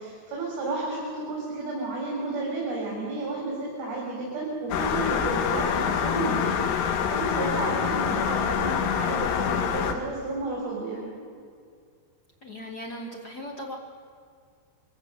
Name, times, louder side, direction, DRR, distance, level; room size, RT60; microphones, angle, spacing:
voice 1, 0.0-11.1, right 2 dB, 65° right, -4 dB, 6.1 m, -32 dB
sound 1, 4.7-9.9, left 7 dB, 85° left, 3.4 m, -26 dB
voice 2, 12.4-13.7, equal, 65° left, 0 dB, 0.9 m, -38 dB
23.5 x 16.5 x 8.2 m, 2.2 s
omnidirectional pair, 4.8 m